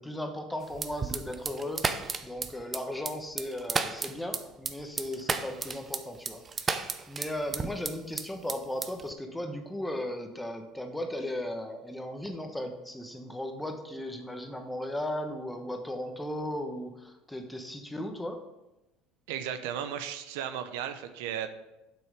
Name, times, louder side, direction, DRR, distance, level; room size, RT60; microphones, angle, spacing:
voice 1, 0.0-1.8 2.2-6.8 7.1-18.4, left 1 dB, 5° left, 5 dB, 1.2 m, -36 dB
sound 1, 0.7-8.2 8.5-9.1, right 5 dB, 25° right, 0.6 m, -32 dB
voice 2, 19.3-21.5, right 9 dB, 80° right, 9 dB, 0.7 m, -35 dB
7.8 x 6.1 x 5.0 m, 0.96 s
supercardioid pair, 105°, 0 cm